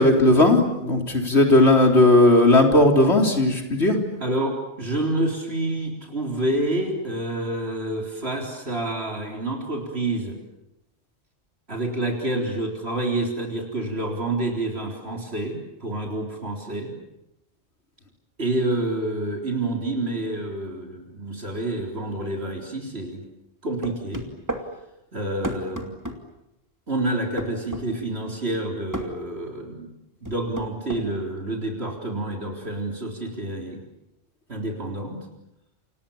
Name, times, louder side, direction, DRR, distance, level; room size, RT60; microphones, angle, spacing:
voice 1, 0.0-4.0, left 1 dB, 70° left, 3 dB, 4.3 m, -16 dB
voice 2, 4.2-10.4 11.7-17.0 18.4-23.2 23.6-24.3 25.1-26.0 26.9-29.9 30.2-33.8 34.5-35.3, right 2 dB, 65° right, 1 dB, 4.2 m, -28 dB
sound 1, 23.8-24.7 25.4-26.2 27.4-27.9 28.9-29.1 30.2-31.0, right 1 dB, 15° right, 2.8 m, -31 dB
29.5 x 27.5 x 7.3 m, 0.87 s
omnidirectional pair, 1.2 m